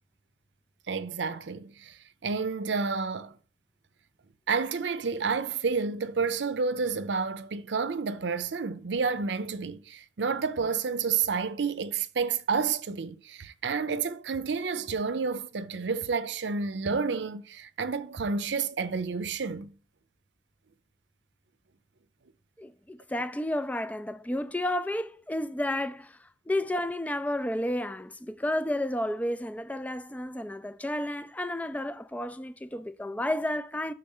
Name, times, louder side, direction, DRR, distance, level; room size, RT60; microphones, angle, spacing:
voice 1, 0.9-3.3 4.5-19.8, right 5 dB, 85° right, 0.6 m, -30 dB
voice 2, 22.6-26.2 26.5-33.9, left 1 dB, 10° left, 0.3 m, -31 dB
6.6 x 3.8 x 5.4 m
head